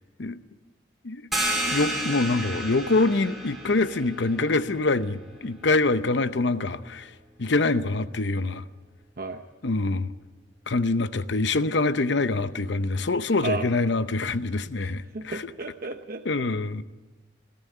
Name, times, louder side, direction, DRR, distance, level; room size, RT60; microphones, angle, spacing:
sound 1, 1.3-6.7, right 1 dB, ahead, 3.3 m, -33 dB
voice 1, 1.5-7.1 7.4-8.6 9.6-10.1 10.7-15.4 16.2-16.8, left 3 dB, 70° left, 0.8 m, -25 dB
voice 2, 14.8-16.4, right 3 dB, 50° right, 0.9 m, -34 dB
22.0 x 14.5 x 9.2 m
head